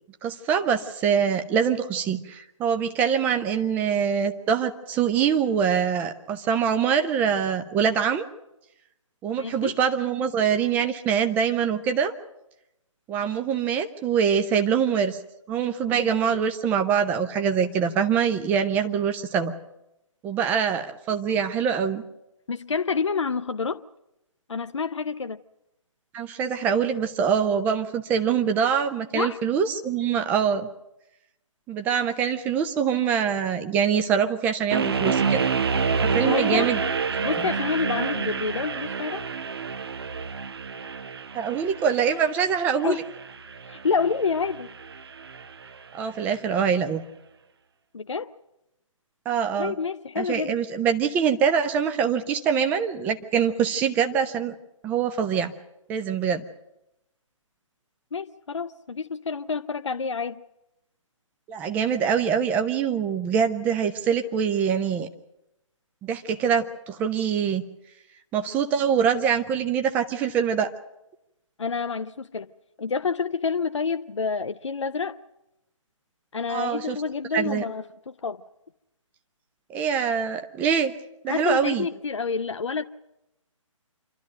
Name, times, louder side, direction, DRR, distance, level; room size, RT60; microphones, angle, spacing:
voice 1, 0.2-8.2 9.2-12.1 13.1-15.2 15.5-19.5 20.2-22.0 26.1-30.7 31.7-35.4 36.0-36.8 41.3-43.0 45.9-47.0 49.3-49.7 50.2-54.6 54.8-55.5 55.9-56.4 61.5-65.1 66.0-67.6 68.3-70.7 76.5-77.0 77.3-77.6 79.7-80.9 81.2-81.9, right 7 dB, 10° right, 0.7 m, -24 dB
voice 2, 9.4-9.7 15.8-16.2 22.5-23.8 24.5-25.4 29.1-29.4 36.0-36.8 37.2-39.3 42.8-43.0 43.7-44.7 47.9-48.3 49.6-50.6 58.1-60.4 71.6-72.5 72.8-75.2 76.3-78.4 81.3-82.8, left 5 dB, 60° left, 0.7 m, -28 dB
sound 1, 34.7-45.8, right 5 dB, 50° right, 0.8 m, -28 dB
27.0 x 12.5 x 9.1 m
figure-of-eight pair, 140°, 17 cm